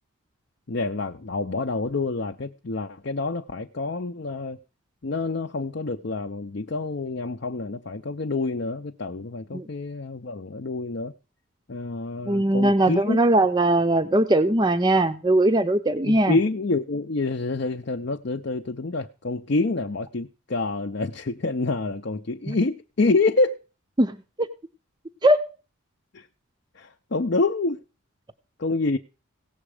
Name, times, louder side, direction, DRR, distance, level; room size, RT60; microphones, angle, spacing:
voice 1, 0.7-4.6 5.0-11.1 11.7-13.2 16.0-23.6 26.1-26.3 26.8-27.8 28.6-29.0, left 3 dB, 50° left, 0.6 m, -27 dB
voice 2, 12.3-16.4 22.5-22.6 24.0-24.5 25.2-25.5, right 1 dB, 20° right, 0.6 m, -20 dB
17.0 x 7.1 x 4.9 m
head